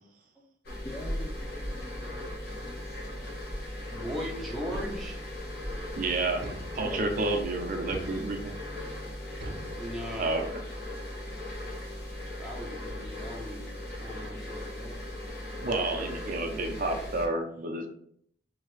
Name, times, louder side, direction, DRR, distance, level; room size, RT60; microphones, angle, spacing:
sound 1, 0.6-17.3, left 1 dB, 60° left, 1.1 m, -38 dB
voice 1, 0.8-3.3 6.8-7.1, left 1 dB, 15° left, 1 dB, 0.3 m, -45 dB
voice 2, 3.9-5.2 9.8-10.3 12.4-15.0 16.0-16.5, equal, ahead, -3 dB, 0.8 m, -39 dB
sound 2, 4.7-5.4 6.4-7.3 7.9-8.7 9.4-10.4, right 1 dB, 80° right, 0.8 m, -44 dB
voice 3, 6.0-6.4 6.7-8.6 10.2-10.6 15.6-17.9, right 2 dB, 50° right, 3 dB, 0.5 m, -30 dB
3.2 x 2.8 x 3.1 m, 0.64 s
head